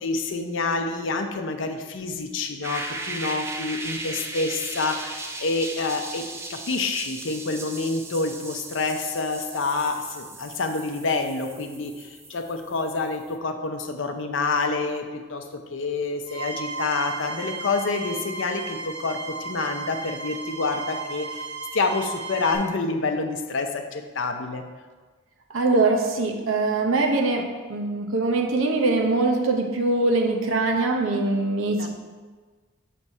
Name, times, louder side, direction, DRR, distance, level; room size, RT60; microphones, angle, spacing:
voice 1, 0.0-24.6 31.8-31.9, left 3 dB, 65° left, 5 dB, 0.6 m, -28 dB
sound 1, 2.6-13.4, right 2 dB, 10° right, 0.3 m, -37 dB
sound 2, 16.3-22.6, right 3 dB, 50° right, 1.6 m, -35 dB
voice 2, 25.5-31.9, right 3 dB, 75° right, 2 dB, 0.8 m, -23 dB
6.1 x 3.3 x 5.4 m, 1.4 s
head